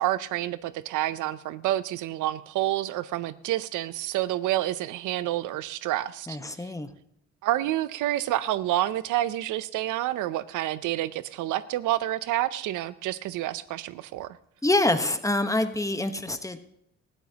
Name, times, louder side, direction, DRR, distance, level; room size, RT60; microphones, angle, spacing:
voice 1, 0.0-6.7 7.4-14.3, right 14 dB, 90° right, 16 dB, 0.6 m, -28 dB
voice 2, 6.3-6.9 14.6-16.6, left 2 dB, 10° left, 9 dB, 1.1 m, -26 dB
19.5 x 13.5 x 2.9 m, 0.72 s
cardioid pair, 90°, 30 cm